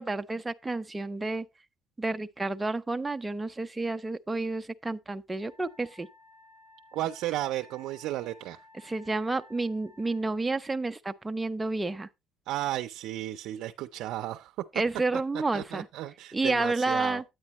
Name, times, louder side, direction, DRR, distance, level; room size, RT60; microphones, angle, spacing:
voice 1, 0.0-1.5 2.0-6.1 8.8-12.1 14.7-15.9 16.3-17.2, right 3 dB, 10° right, 0.4 m, -30 dB
Wind instrument woodwind instrument, 5.4-10.3, left 2 dB, 60° left, 5.3 m, -56 dB
voice 2, 6.9-8.6 12.5-14.5 15.5-17.2, right 14 dB, 60° right, 0.5 m, -34 dB
9.7 x 9.0 x 2.9 m
cardioid pair, 175°, 0 cm